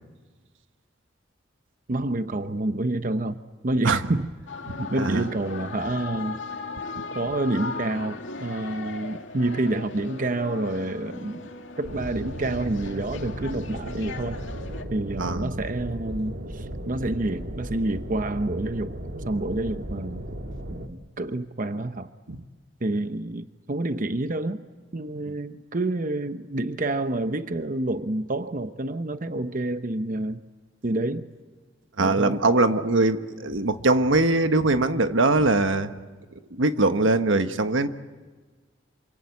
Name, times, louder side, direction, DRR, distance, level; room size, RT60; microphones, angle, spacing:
voice 1, 1.9-3.4 3.6-4.3 4.8-6.4 7.1-11.5 11.8-14.4 14.9-18.9 19.3-20.2 20.7-22.1 22.8-24.6 24.9-30.4 30.8-31.3 32.0-32.4, right 2 dB, 45° right, 10 dB, 0.8 m, -28 dB
sound 1, 4.5-14.8, left 4 dB, 80° left, 2.2 m, -38 dB
voice 2, 4.7-5.2 6.9-7.0 15.2-15.5 22.3-22.4 32.0-35.9 36.6-37.9, right 2 dB, 85° right, 9 dB, 1.3 m, -22 dB
sound 2, 11.8-20.9, right 1 dB, 60° right, 1.8 m, -35 dB
27.5 x 25.5 x 8.5 m, 1.4 s
head